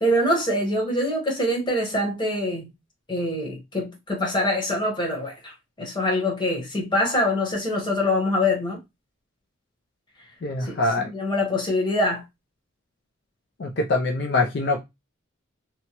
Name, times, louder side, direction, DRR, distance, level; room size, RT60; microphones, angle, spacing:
voice 1, 0.0-2.7 3.1-8.8 10.6-10.8 11.1-12.2, left 1 dB, 20° left, 1.0 m, -24 dB
voice 2, 10.4-11.1 13.6-14.8, left 2 dB, 55° left, 0.4 m, -24 dB
3.0 x 2.1 x 2.8 m
head